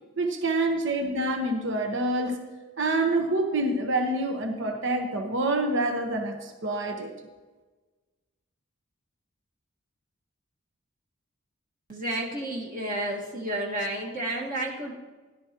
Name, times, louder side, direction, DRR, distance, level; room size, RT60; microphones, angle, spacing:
voice 1, 0.2-2.4 2.8-7.1, right 2 dB, 65° right, 4 dB, 1.1 m, -27 dB
voice 2, 11.9-14.9, right 1 dB, 45° right, -1 dB, 1.7 m, -31 dB
16.5 x 11.5 x 3.0 m, 1.3 s
head